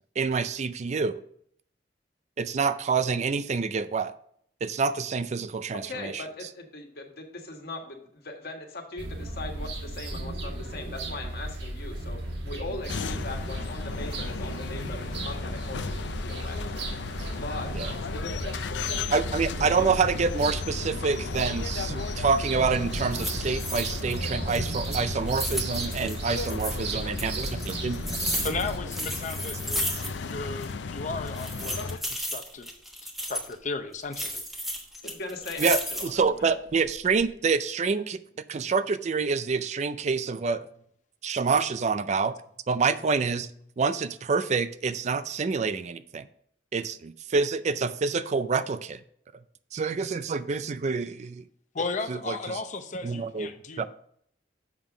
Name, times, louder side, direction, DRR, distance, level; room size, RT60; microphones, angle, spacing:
voice 1, 0.2-1.2 2.4-4.1 4.6-6.2 17.7-17.9 19.1-28.2 35.6-38.2 38.5-40.7 41.2-42.3 42.7-43.5 43.8-46.3 46.7-49.0 49.7-51.4 52.1-52.6 53.0-53.8, right 5 dB, 40° right, 13 dB, 0.4 m, -27 dB
voice 2, 5.7-16.6 17.3-19.9 35.1-36.5, left 2 dB, 60° left, 3 dB, 1.5 m, -40 dB
sound 1, 9.0-28.8, right 2 dB, 75° right, 1.5 m, -35 dB
sound 2, 12.9-32.0, left 4 dB, 85° left, 0.5 m, -36 dB
sound 3, 22.6-22.7 23.1-24.2 24.5-26.8 27.2-30.4 30.6-30.7 31.3-33.5 34.1-36.2 36.7-37.3, equal, ahead, 1.2 m, -34 dB
voice 3, 28.4-32.7 33.3-34.4 51.7-53.8, left 3 dB, 45° left, 7 dB, 0.8 m, -35 dB
7.3 x 5.5 x 4.9 m, 0.65 s
head